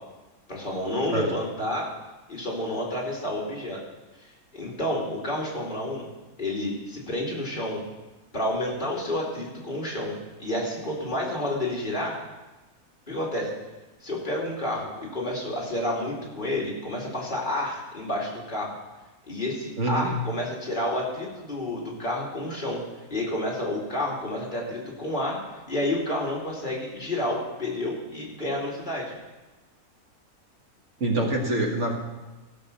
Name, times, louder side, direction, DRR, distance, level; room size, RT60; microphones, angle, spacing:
voice 1, 0.5-1.9 2.3-3.8 4.2-4.3 4.5-6.1 6.4-7.8 8.3-12.2 13.1-13.5 14.0-18.7 19.3-22.8 23.1-29.1, left 1 dB, 30° left, -3 dB, 2.8 m, -30 dB
voice 2, 19.8-20.1 31.0-31.9, right 2 dB, 50° right, 1 dB, 1.8 m, -25 dB
15.5 x 6.1 x 6.7 m, 1.1 s
omnidirectional pair, 1.6 m